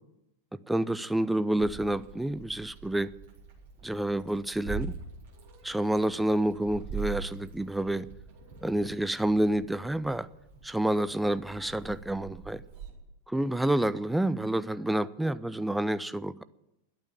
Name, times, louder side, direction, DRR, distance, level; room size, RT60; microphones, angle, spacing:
voice 1, 0.7-3.1 3.8-4.9 5.6-8.1 8.6-10.3 10.6-12.6 13.3-16.4, right 1 dB, 5° right, 0.5 m, -28 dB
Meow, 1.6-12.9, right 6 dB, 55° right, 4.1 m, -43 dB
11.5 x 8.6 x 9.4 m
figure-of-eight pair, 90°, 0 cm